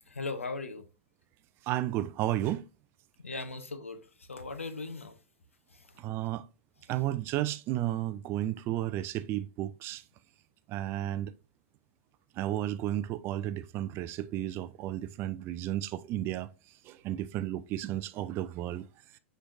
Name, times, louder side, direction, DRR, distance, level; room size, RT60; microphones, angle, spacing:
voice 1, 0.1-0.9 3.2-5.2 5.7-5.9, left 3 dB, 85° left, 0.6 m, -39 dB
voice 2, 1.6-2.6 6.0-6.4 6.9-10.0 10.7-11.3 12.4-16.5 16.8-18.8, right 13 dB, 35° right, 0.3 m, -33 dB
6.1 x 3.3 x 2.5 m
figure-of-eight pair, 95°, 7 cm